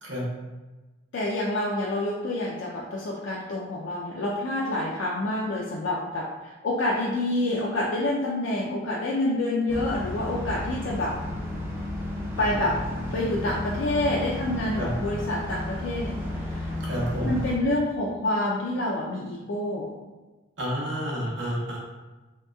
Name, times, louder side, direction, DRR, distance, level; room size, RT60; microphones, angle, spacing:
voice 1, 1.1-11.1 12.4-12.8 13.1-16.2 16.4-16.7 17.2-19.9, left 1 dB, 65° left, -4 dB, 0.4 m, -27 dB
sound 1, 9.7-17.6, left 1 dB, 10° right, 0.5 m, -33 dB
voice 2, 16.8-17.3 20.6-22.0, equal, 65° right, -4 dB, 0.8 m, -30 dB
3.1 x 2.8 x 2.2 m, 1.2 s
head